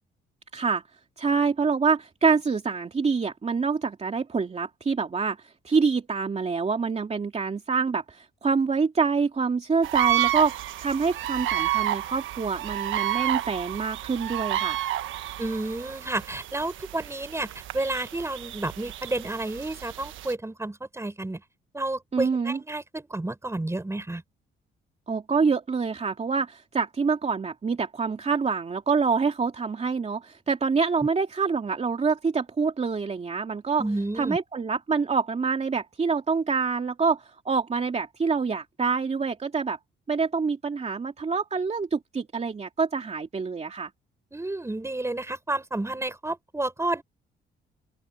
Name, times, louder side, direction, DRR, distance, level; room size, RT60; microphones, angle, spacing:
voice 1, 0.5-0.8 1.2-14.8 22.1-22.6 25.1-33.8 34.1-39.8 40.1-43.9, right 5 dB, 35° right, 2.9 m, -26 dB
sound 1, 9.8-20.3, right 13 dB, 80° right, 1.2 m, -30 dB
voice 2, 15.4-21.4 21.7-24.2 33.8-34.4 44.3-47.0, right 2 dB, 15° right, 6.3 m, -31 dB
open air
cardioid pair, 90°, 20 cm